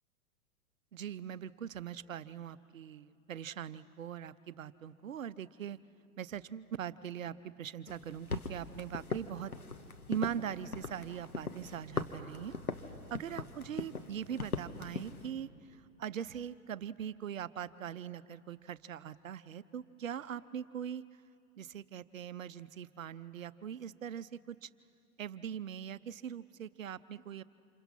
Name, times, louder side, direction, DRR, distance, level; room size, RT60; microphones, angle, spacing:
voice 1, 0.9-5.8 6.2-9.5 10.1-12.5 13.1-21.0 21.6-24.7 25.2-27.4, right 9 dB, 65° right, 16 dB, 0.8 m, -41 dB
sound 1, 7.9-15.3, left 4 dB, 85° left, 1.5 m, -41 dB
28.0 x 27.5 x 5.7 m, 2.6 s
figure-of-eight pair, 105°, 43 cm